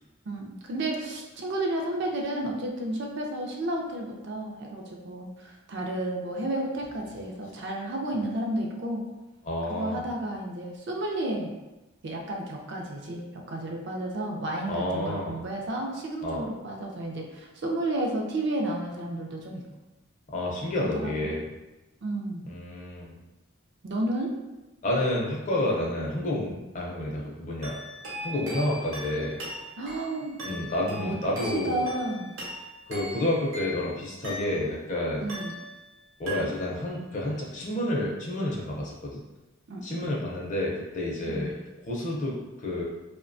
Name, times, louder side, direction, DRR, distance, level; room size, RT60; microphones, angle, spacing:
voice 1, 0.3-9.0 9.7-11.5 12.0-19.7 20.7-21.3 22.0-22.4 23.8-24.3 29.8-30.4 31.0-31.2 31.4-32.3 35.2-35.6 39.7-40.2 41.3-41.5, right 1 dB, 55° right, 0 dB, 0.4 m, -32 dB
voice 2, 9.5-10.1 14.7-15.4 16.2-16.4 20.3-21.4 22.4-23.1 24.8-27.8 28.2-29.4 30.5-31.8 32.9-35.2 36.2-39.2 39.8-41.5 41.9-42.8, left 1 dB, 35° left, -3 dB, 0.5 m, -30 dB
sound 1, 27.6-34.9 35.3-36.0 36.3-36.9, equal, 70° right, 0.8 m, -39 dB
2.6 x 2.1 x 2.5 m, 1.0 s
head